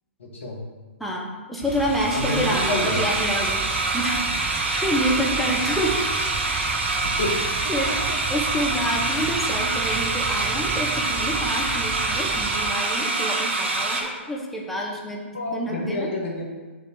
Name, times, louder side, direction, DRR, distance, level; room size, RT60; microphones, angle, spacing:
voice 1, 0.2-0.6 2.1-3.0 7.2-7.3 7.6-8.2 15.3-16.4, left 2 dB, 75° left, -2 dB, 2.0 m, -29 dB
voice 2, 1.0-3.6 3.9-4.2 4.5-6.0 7.7-8.0 8.3-16.1, equal, ahead, -2 dB, 1.0 m, -28 dB
sound 1, 1.6-12.8, right 7 dB, 30° right, 0.5 m, -36 dB
sound 2, 1.6-14.0, right 2 dB, 60° right, 1.8 m, -25 dB
6.4 x 4.2 x 6.5 m, 1.4 s
figure-of-eight pair, 115°, 7 cm